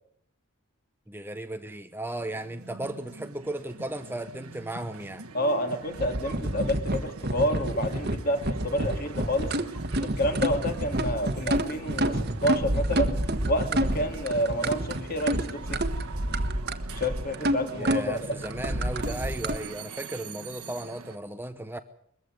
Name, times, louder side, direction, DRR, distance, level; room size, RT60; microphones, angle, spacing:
voice 1, 1.1-5.2 17.7-21.8, right 1 dB, 10° right, 0.8 m, -35 dB
sound 1, 2.1-21.2, right 4 dB, 90° right, 1.6 m, -44 dB
voice 2, 5.3-9.5 10.0-13.2 13.5-15.8 16.9-18.2, equal, 40° left, 2.9 m, -29 dB
sound 2, 5.9-19.6, right 1 dB, 45° right, 1.4 m, -29 dB
22.0 x 14.5 x 9.4 m
head